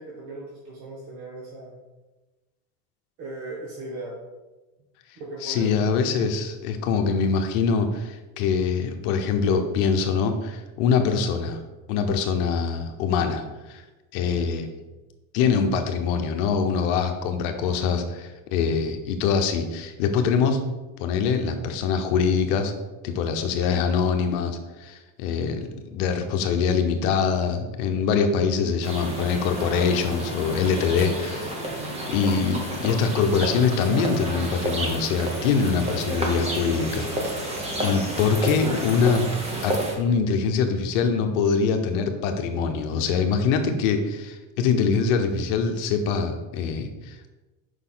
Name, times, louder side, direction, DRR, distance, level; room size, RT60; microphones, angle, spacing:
voice 1, 0.0-1.7 3.2-4.1 5.2-5.8, right 2 dB, 65° right, -4 dB, 1.6 m, -37 dB
voice 2, 5.4-11.6 11.9-13.8 14.1-14.7 15.3-20.6 21.0-22.7 23.0-31.6 32.1-37.5 37.8-39.3 39.6-47.3, left 5 dB, 60° left, 6 dB, 0.9 m, -24 dB
sound 1, 28.8-39.9, right 1 dB, 15° right, 0.8 m, -30 dB
6.4 x 5.4 x 3.9 m, 1.1 s
cardioid pair, 175°, 40 cm